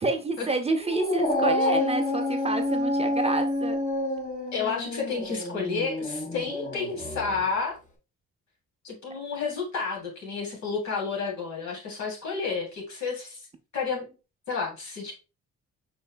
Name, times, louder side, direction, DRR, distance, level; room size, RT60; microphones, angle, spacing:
voice 1, 0.0-3.8, right 3 dB, 20° right, 5 dB, 0.6 m, -28 dB
Dog, 0.8-7.4, left 1 dB, 25° left, 1.4 m, -28 dB
voice 2, 4.5-7.8 8.8-13.4 13.7-14.1 14.5-15.1, left 5 dB, 65° left, -1 dB, 2.8 m, -31 dB
5.5 x 4.4 x 2.2 m, 0.31 s
cardioid pair, 90°, 30 cm